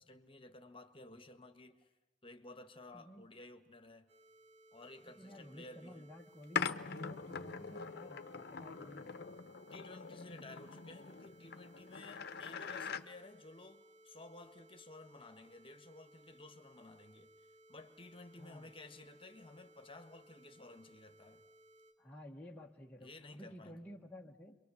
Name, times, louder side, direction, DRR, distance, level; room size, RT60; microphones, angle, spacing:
voice 1, 0.0-1.9 2.2-4.1 4.7-6.1 9.7-17.3 17.7-21.5 23.0-24.0, left 2 dB, 30° left, 1.5 m, -54 dB
voice 2, 2.9-3.3 5.0-9.1 18.4-18.7 22.0-24.6, equal, 10° left, 1.2 m, -53 dB
sound 1, 4.1-21.9, right 1 dB, 60° right, 5.4 m, -63 dB
sound 2, 6.6-13.0, left 6 dB, 60° left, 0.9 m, -43 dB
28.5 x 23.5 x 7.1 m
head